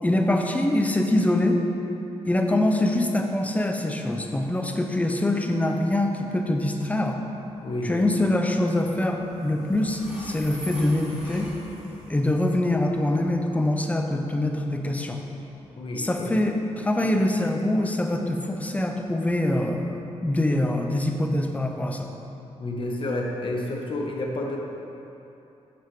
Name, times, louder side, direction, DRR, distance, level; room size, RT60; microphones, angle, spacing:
voice 1, 0.0-1.6 2.2-7.2 7.8-11.5 12.1-15.2 16.0-22.1, left 1 dB, 10° left, 3 dB, 0.7 m, -24 dB
Train, 6.3-20.4, equal, 5° right, 1.8 m, -47 dB
voice 2, 7.6-8.0 15.8-16.3 22.6-24.6, left 1 dB, 50° left, 0 dB, 1.1 m, -30 dB
7.0 x 6.1 x 4.6 m, 2.9 s
cardioid pair, 105°, 12 cm